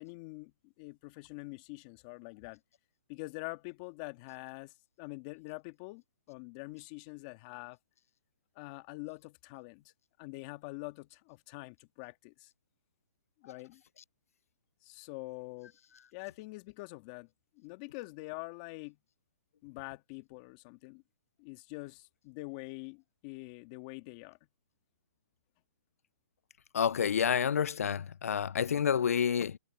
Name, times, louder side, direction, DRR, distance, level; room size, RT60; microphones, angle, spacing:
voice 1, 0.0-2.6 3.1-6.0 6.3-7.8 8.6-9.9 10.2-12.5 13.4-13.8 14.8-15.7 16.1-17.3 17.6-19.0 19.6-21.0 21.4-24.4, left 24 dB, 30° left, 2.1 m, -45 dB
voice 2, 26.7-29.6, left 7 dB, 80° left, 0.4 m, -29 dB
hypercardioid pair, 155°, 8 cm